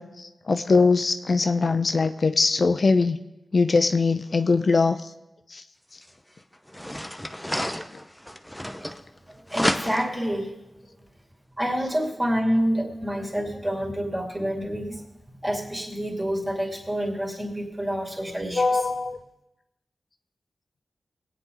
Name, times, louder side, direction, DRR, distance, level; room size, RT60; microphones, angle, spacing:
voice 1, 0.0-3.2 3.5-5.0 5.5-5.6 18.5-19.2, left 4 dB, 55° left, 8 dB, 0.6 m, -21 dB
sound 1, 6.0-6.1 6.7-9.2 9.5-10.3, equal, 5° left, 0.8 m, -30 dB
voice 2, 9.3-10.5 11.6-15.0 15.4-18.8, equal, 20° right, 0 dB, 2.7 m, -28 dB
21.0 x 9.1 x 3.9 m, 0.98 s
wide cardioid pair, 80°, 0 cm